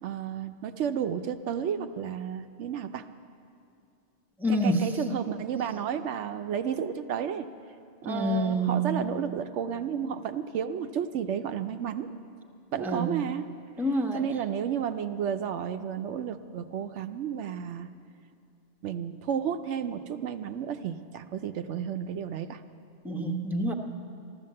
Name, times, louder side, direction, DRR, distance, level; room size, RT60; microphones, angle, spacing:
voice 1, 0.0-3.0 4.5-7.5 8.0-12.1 12.7-13.5 14.1-17.9 18.8-22.6, right 8 dB, 80° right, 9 dB, 0.9 m, -32 dB
voice 2, 4.4-4.8 8.1-8.9 12.8-13.2 13.8-14.2 23.0-23.7, right 1 dB, ahead, 1 dB, 0.8 m, -27 dB
13.5 x 13.0 x 7.6 m, 2.5 s
omnidirectional pair, 1.2 m